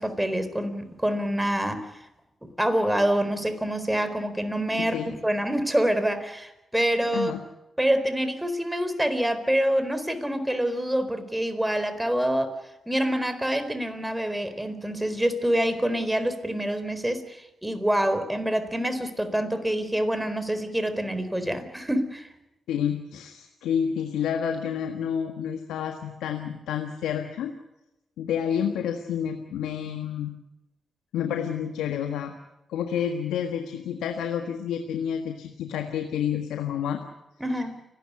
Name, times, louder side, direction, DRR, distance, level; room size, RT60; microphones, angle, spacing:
voice 1, 0.0-1.9 2.6-7.3 7.8-12.5 12.9-22.3 37.4-37.7, right 1 dB, 10° right, 10 dB, 4.2 m, -26 dB
voice 2, 4.8-5.1 7.1-7.4 22.7-27.5 28.2-30.3 31.1-32.3 32.7-37.0, left 8 dB, 80° left, 5 dB, 1.5 m, -29 dB
29.5 x 12.5 x 9.8 m, 0.95 s
hypercardioid pair, 40°, 0 cm